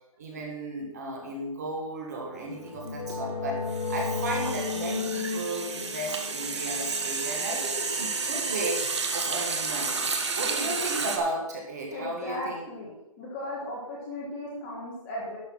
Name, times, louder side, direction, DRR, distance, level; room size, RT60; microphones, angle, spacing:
voice 1, 0.2-10.0 10.3-12.6, right 2 dB, 30° right, 0 dB, 1.9 m, -34 dB
sound 1, 2.3-7.9, left 4 dB, 85° left, 3.1 m, -34 dB
sound 2, 2.3-2.6 2.9-11.2, right 4 dB, 50° right, 1.4 m, -31 dB
voice 2, 11.9-15.4, left 1 dB, 10° left, -5 dB, 1.4 m, -36 dB
11.5 x 6.8 x 5.5 m, 0.90 s
hypercardioid pair, 175°, 18 cm